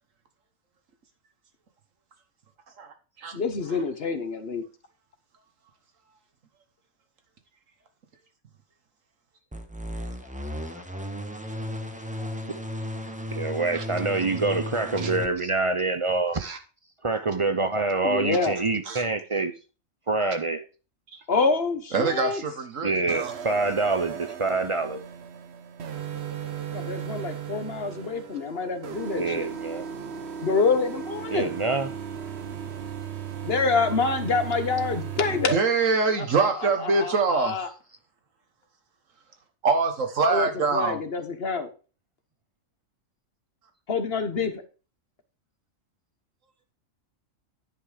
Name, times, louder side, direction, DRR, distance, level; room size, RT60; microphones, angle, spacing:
voice 1, 2.8-3.3 13.7-13.8 15.0-15.1 16.4-16.6 18.9-19.1 21.1-21.2 21.9-23.3 35.5-37.7 39.6-41.0, right 4 dB, 75° right, 1.6 m, -25 dB
voice 2, 3.3-4.6 10.5-11.1 11.5-11.6 12.2-12.4 18.0-18.5 21.3-22.4 26.7-29.5 30.4-31.5 33.4-35.6 36.2-36.5 36.8-37.7 40.3-40.5 40.7-41.7 43.9-44.6, left 4 dB, 50° left, 1.3 m, -27 dB
sound 1, 9.5-15.3, left 1 dB, 5° right, 1.0 m, -34 dB
voice 3, 13.3-16.4 17.0-19.5 20.1-20.6 22.0-22.1 22.8-25.0 29.1-29.9 31.3-31.9, right 3 dB, 40° right, 0.4 m, -26 dB
sound 2, 23.1-35.6, right 8 dB, 55° right, 1.0 m, -36 dB
9.9 x 5.9 x 4.9 m
omnidirectional pair, 1.4 m